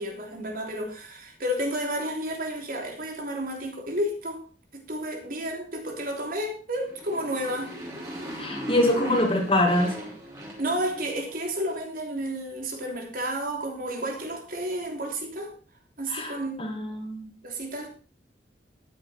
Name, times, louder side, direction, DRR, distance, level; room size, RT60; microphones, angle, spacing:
voice 1, 0.0-4.4 4.7-7.7 9.0-9.1 10.6-15.5 16.0-16.6 17.4-17.9, equal, 55° right, 2 dB, 3.4 m, -31 dB
Motorcycle, 6.7-11.4, equal, 20° right, 5.6 m, -38 dB
voice 2, 8.4-10.0 16.1-17.2, left 1 dB, 30° left, 3 dB, 2.5 m, -24 dB
13.5 x 10.5 x 4.5 m, 0.38 s
head